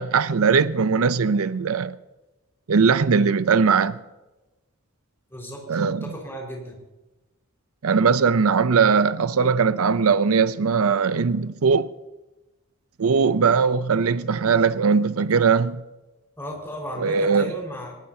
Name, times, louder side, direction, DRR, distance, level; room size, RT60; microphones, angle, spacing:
voice 1, 0.0-2.0 2.7-4.0 5.7-6.0 7.8-11.9 13.0-15.8 17.0-17.5, right 5 dB, 90° right, 0.6 m, -20 dB
voice 2, 5.3-6.8 16.4-17.9, equal, 10° left, 4.8 m, -35 dB
21.0 x 20.0 x 2.8 m
head